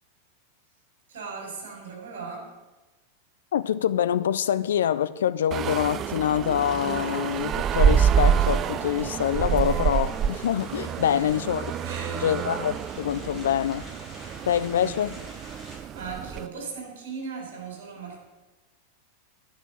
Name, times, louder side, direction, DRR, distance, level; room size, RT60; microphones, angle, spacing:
voice 1, 1.1-2.6 11.1-11.4 11.8-12.3 14.3-15.3 15.7-18.2, right 5 dB, 55° right, 4.2 m, -38 dB
voice 2, 3.5-11.7 12.2-13.9 14.5-15.2, left 10 dB, 60° left, 0.3 m, -25 dB
sound 1, 5.5-16.5, right 8 dB, 30° right, 0.3 m, -27 dB
sound 2, 6.4-15.8, equal, 10° right, 3.3 m, -47 dB
10.5 x 6.1 x 8.9 m
figure-of-eight pair, 90°, 0 cm